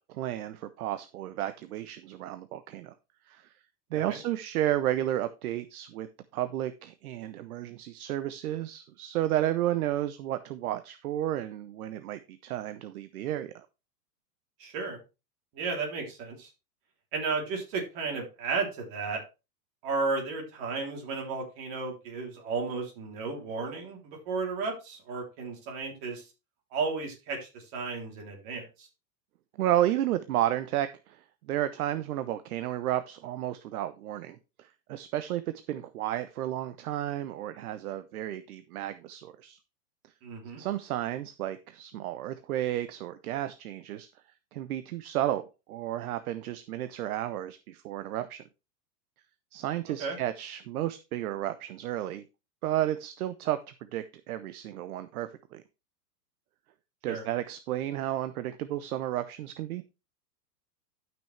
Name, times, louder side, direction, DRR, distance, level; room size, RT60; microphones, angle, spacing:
voice 1, 0.1-2.9 3.3-3.5 3.9-6.1 6.3-13.7 29.6-35.4 35.7-39.6 40.6-44.1 44.5-48.4 49.5-52.2 52.6-53.6 53.9-55.6 57.0-59.8, right 13 dB, 60° right, 11 dB, 0.8 m, -32 dB
voice 2, 14.6-15.0 15.5-16.5 17.1-19.2 19.8-26.3 26.7-28.9 40.2-40.6 50.0-50.2 57.1-57.2, right 4 dB, 35° right, 1 dB, 3.4 m, -33 dB
12.0 x 6.2 x 3.3 m, 0.28 s
supercardioid pair, 160°, 49 cm